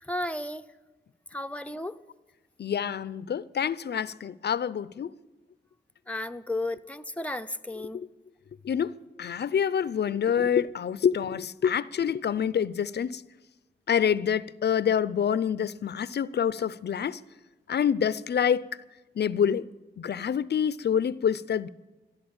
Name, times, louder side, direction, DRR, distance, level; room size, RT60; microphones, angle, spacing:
voice 1, 0.1-0.7 1.3-2.0 6.1-8.0, left 1 dB, 5° left, 0.7 m, -33 dB
voice 2, 2.6-5.1 8.6-8.9 9.2-13.2 13.9-17.2 17.7-18.7 19.2-19.7 20.0-21.7, left 8 dB, 65° left, 0.6 m, -26 dB
13.5 x 11.0 x 8.7 m
cardioid pair, 65°, 19 cm